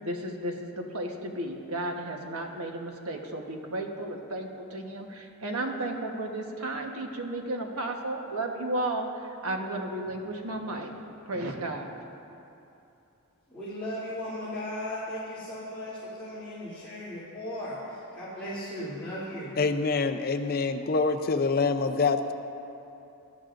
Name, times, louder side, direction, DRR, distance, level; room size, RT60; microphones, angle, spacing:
voice 1, 0.0-11.9, right 1 dB, 80° right, 2 dB, 1.3 m, -33 dB
voice 2, 13.5-19.5, left 1 dB, 5° left, -13 dB, 3.0 m, -37 dB
voice 3, 19.6-22.3, left 4 dB, 45° left, 8 dB, 0.5 m, -26 dB
20.5 x 12.0 x 2.6 m, 2.8 s
head